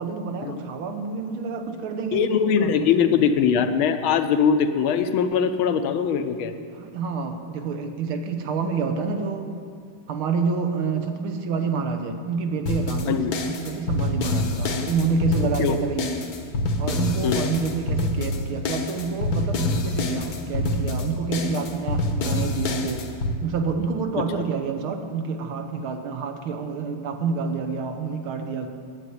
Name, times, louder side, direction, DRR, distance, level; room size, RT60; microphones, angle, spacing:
voice 1, 0.0-3.2 6.4-9.5 10.1-16.2 16.8-23.1 23.4-28.7, right 5 dB, 75° right, 6 dB, 1.8 m, -28 dB
voice 2, 2.1-6.5 13.1-13.3 15.6-15.8 17.2-17.4, left 7 dB, 75° left, 9 dB, 1.5 m, -21 dB
sound 1, 12.7-23.3, left 2 dB, 55° left, 1.2 m, -26 dB
9.9 x 8.3 x 9.4 m, 2.2 s
omnidirectional pair, 2.4 m